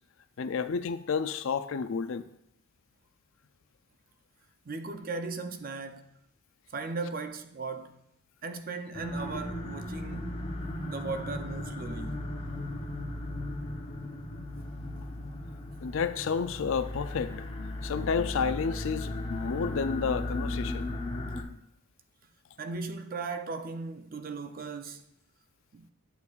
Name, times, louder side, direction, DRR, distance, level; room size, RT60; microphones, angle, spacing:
voice 1, 0.4-2.2 15.8-17.3 17.8-20.8, left 5 dB, 65° left, 0.4 m, -30 dB
voice 2, 4.6-6.2 6.7-8.1 8.4-12.2 22.6-25.0 25.7-25.9, right 4 dB, 40° right, 0.5 m, -37 dB
sound 1, 8.9-21.4, left 1 dB, 25° left, 0.9 m, -36 dB
10.5 x 6.7 x 2.4 m
head